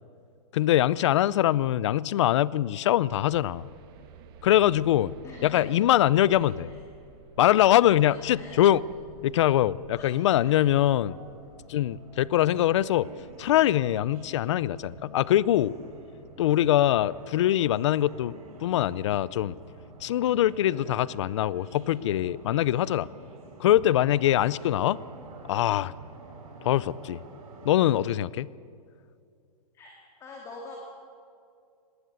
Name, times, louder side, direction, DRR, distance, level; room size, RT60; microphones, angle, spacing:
voice 1, 0.5-3.7 4.4-5.1 5.4-6.7 7.4-8.8 9.2-11.1 11.7-13.1 13.4-15.7 16.4-19.5 20.0-23.1 23.6-25.0 25.5-25.9 26.6-27.2 27.6-28.5, left 13 dB, 50° left, 21 dB, 0.5 m, -23 dB
sound 1, 3.1-17.2, right 6 dB, 35° right, 1.5 m, -54 dB
voice 2, 5.2-5.8 6.3-6.8 8.0-8.6 9.9-10.1 10.4-10.6 11.1-11.2 29.7-30.8, left 3 dB, 15° left, 0 dB, 2.2 m, -46 dB
sound 2, 8.2-28.0, right 3 dB, 65° right, 5.4 m, -48 dB
20.0 x 18.0 x 8.2 m, 2.4 s
hypercardioid pair, 165°, 20 cm